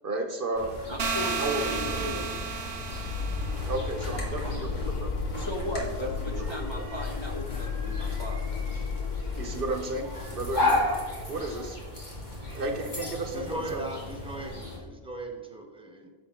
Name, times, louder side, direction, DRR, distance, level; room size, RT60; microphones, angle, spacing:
voice 1, 0.0-0.7 1.3-2.3 3.7-5.2 5.7-6.8 9.4-10.9 11.3-11.8 12.5-13.8, right 2 dB, 60° right, 5 dB, 1.1 m, -33 dB
sound 1, 0.5-14.8, left 2 dB, 45° left, 2.2 m, -35 dB
voice 2, 0.9-2.4 5.4-8.4, left 1 dB, 30° left, 0 dB, 0.8 m, -37 dB
sound 2, 1.0-3.9, right 5 dB, 85° right, 1.0 m, -33 dB
sound 3, 2.8-11.7, left 5 dB, 65° left, 0.7 m, -34 dB
voice 3, 13.3-16.1, right 1 dB, 5° right, 0 dB, 1.3 m, -38 dB
10.0 x 7.1 x 3.6 m, 1.4 s
omnidirectional pair, 1.1 m